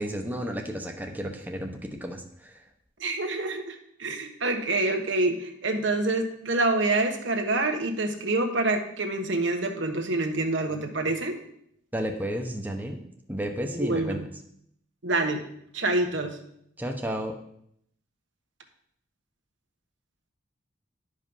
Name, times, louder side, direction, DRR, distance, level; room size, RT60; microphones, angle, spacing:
voice 1, 0.0-2.5 11.9-13.0 13.3-14.2 16.8-17.3, equal, 10° right, 2 dB, 0.9 m, -32 dB
voice 2, 3.0-11.4 13.7-14.2 15.0-15.4 15.7-16.4, right 2 dB, 80° right, 4 dB, 1.2 m, -27 dB
11.0 x 5.2 x 5.5 m, 0.72 s
head